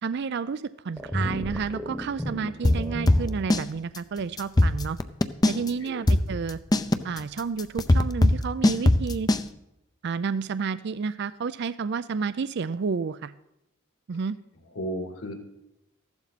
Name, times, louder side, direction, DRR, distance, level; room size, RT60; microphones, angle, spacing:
voice 1, 0.0-5.0 5.5-6.6 7.0-9.3 10.0-13.3 14.1-14.4, right 5 dB, 55° right, 15 dB, 0.4 m, -30 dB
sound 1, 1.0-3.4, left 1 dB, ahead, 1.0 m, -33 dB
sound 2, 2.6-3.7 3.9-4.0 4.4-5.7 6.1-9.4, left 1 dB, 20° left, 0.5 m, -20 dB
voice 2, 5.5-6.0 14.8-15.4, equal, 75° left, 3 dB, 2.6 m, -34 dB
15.0 x 11.5 x 4.1 m, 0.85 s
head